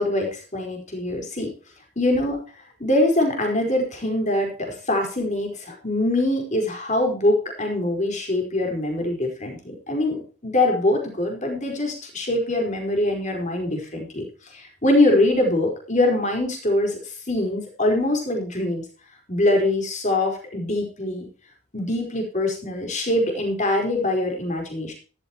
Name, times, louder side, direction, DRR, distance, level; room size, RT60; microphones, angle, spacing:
voice 1, 0.0-1.5 2.0-2.4 2.8-14.2 14.5-18.8 19.3-21.3 21.7-24.9, left 1 dB, 30° left, 2 dB, 4.7 m, -23 dB
14.5 x 12.5 x 3.0 m, 0.36 s
head